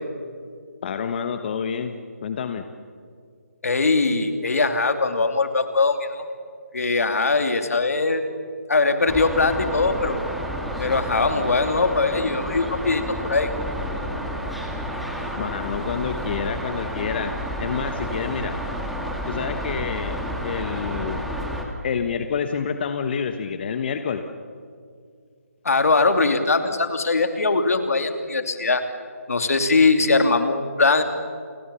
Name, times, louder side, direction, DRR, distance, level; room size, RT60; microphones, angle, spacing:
voice 1, 0.8-1.9 2.2-2.6 15.4-17.3 17.6-18.6 19.3-21.2 21.8-24.2, left 6 dB, 40° left, 8 dB, 1.3 m, -28 dB
voice 2, 3.6-6.2 6.7-8.2 8.7-10.2 10.8-13.5 25.6-28.8 29.3-31.0, left 3 dB, 70° left, 7 dB, 2.9 m, -21 dB
sound 1, 9.1-21.7, equal, ahead, 2.1 m, -30 dB
30.0 x 22.5 x 7.1 m, 2.2 s
figure-of-eight pair, 150°, 8 cm